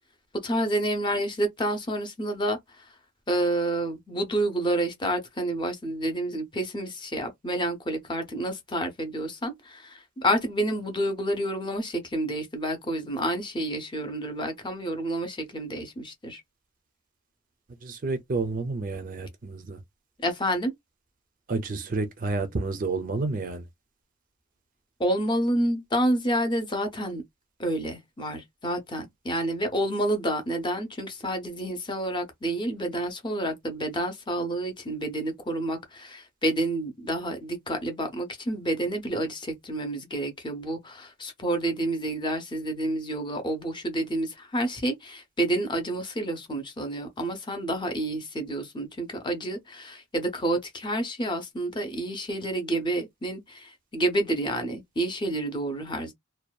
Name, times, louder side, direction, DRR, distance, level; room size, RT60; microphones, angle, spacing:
voice 1, 0.4-2.9 3.3-16.4 20.2-20.7 25.0-27.2 27.6-56.1, right 1 dB, 20° left, 0.6 m, -29 dB
voice 2, 17.8-19.8 21.5-23.7, right 3 dB, 40° right, 0.4 m, -30 dB
2.6 x 2.2 x 2.3 m
head